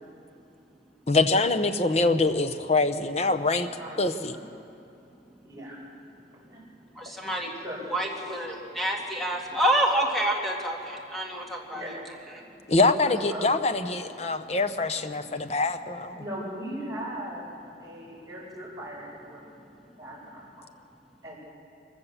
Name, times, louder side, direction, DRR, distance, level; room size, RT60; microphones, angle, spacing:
voice 1, 1.1-3.7 4.0-4.4 12.7-16.2, left 3 dB, 35° left, 9 dB, 0.9 m, -24 dB
voice 2, 5.4-5.8 6.5-6.6 7.6-7.9 8.4-8.6 11.7-12.1 13.0-13.6 16.2-17.5 17.8-19.5 20.0-20.7 21.2-21.4, equal, 20° right, -6 dB, 6.8 m, -38 dB
voice 3, 7.0-7.5 7.9-12.0 12.3-12.4, right 1 dB, ahead, -1 dB, 2.3 m, -28 dB
24.5 x 15.0 x 7.4 m, 2.6 s
head